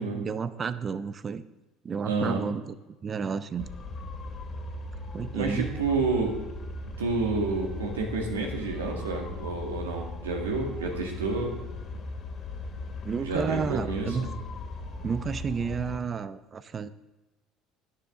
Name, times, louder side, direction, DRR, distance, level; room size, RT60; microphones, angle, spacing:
voice 1, 0.1-1.4 1.8-2.8 3.0-3.7 5.1-5.7 13.0-14.3 15.0-16.9, right 6 dB, 35° right, 14 dB, 0.7 m, -31 dB
voice 2, 2.1-2.4 5.3-6.4 7.0-11.5 13.2-14.3, right 3 dB, 85° right, 1 dB, 2.0 m, -29 dB
sound 1, 3.6-16.0, left 2 dB, 40° left, 2.4 m, -38 dB
13.5 x 10.0 x 3.8 m, 1.1 s
hypercardioid pair, 65°, 0 cm